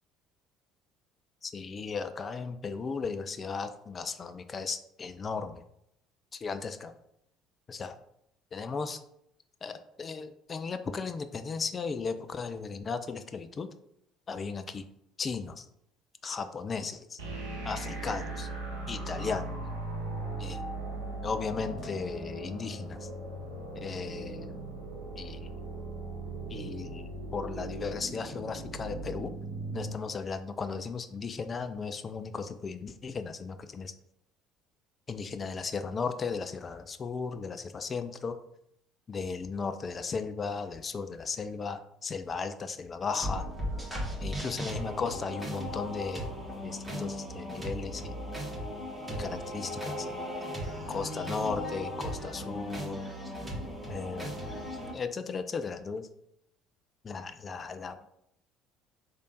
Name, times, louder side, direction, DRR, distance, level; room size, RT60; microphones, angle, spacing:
voice 1, 1.4-5.6 6.3-6.9 7.7-8.0 8.5-9.0 9.6-13.7 14.3-14.8 15.2-15.7 16.2-17.2 17.6-18.5 18.9-19.5 20.4-20.6 21.2-23.1 23.8-24.6 25.2-25.5 26.5-29.3 29.7-33.9 35.1-38.4 39.1-43.5 44.2-46.2 46.6-48.1 49.2-50.2 50.9-53.0 53.9-54.6 54.9-56.1 57.1-58.0, left 5 dB, 35° left, 9 dB, 0.3 m, -36 dB
sound 1, 17.2-29.9, right 2 dB, 75° right, 0.8 m, -38 dB
sound 2, 43.1-54.9, equal, 10° right, 1.5 m, -37 dB
3.3 x 2.5 x 4.0 m, 0.76 s
figure-of-eight pair, 60°, 0 cm